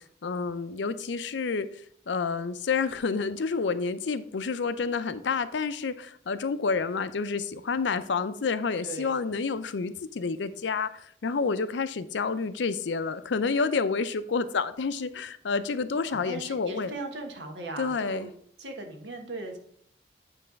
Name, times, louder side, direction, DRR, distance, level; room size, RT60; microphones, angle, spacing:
voice 1, 0.0-16.9 17.8-18.3, left 4 dB, 85° left, 13 dB, 0.5 m, -29 dB
voice 2, 16.1-18.3 18.6-19.6, right 2 dB, 80° right, 3 dB, 1.4 m, -38 dB
8.9 x 3.3 x 5.2 m, 0.66 s
head